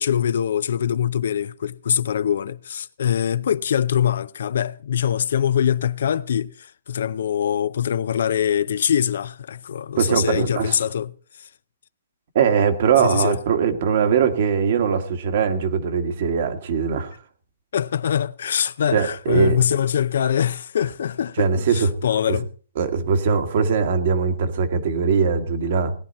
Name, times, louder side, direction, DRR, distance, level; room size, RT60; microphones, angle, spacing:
voice 1, 0.0-11.1 13.0-13.4 17.7-22.5, left 9 dB, 70° left, 0.5 m, -23 dB
voice 2, 10.0-10.8 12.3-17.1 18.9-19.6 21.4-21.9 22.3-22.4 22.8-25.9, right 6 dB, 55° right, 1.7 m, -21 dB
18.0 x 10.5 x 4.2 m
hypercardioid pair, 155°, 0 cm